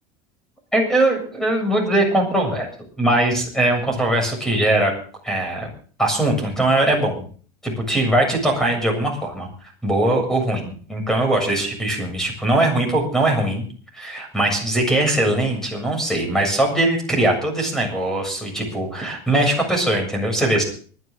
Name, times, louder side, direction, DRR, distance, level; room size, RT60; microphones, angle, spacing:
voice 1, 0.7-4.9 5.2-5.7 6.0-7.2 7.6-9.5 9.8-13.6 13.9-20.6, right 1 dB, 5° left, 3 dB, 7.4 m, -21 dB
24.5 x 11.0 x 3.8 m, 0.43 s
supercardioid pair, 130°, 13 cm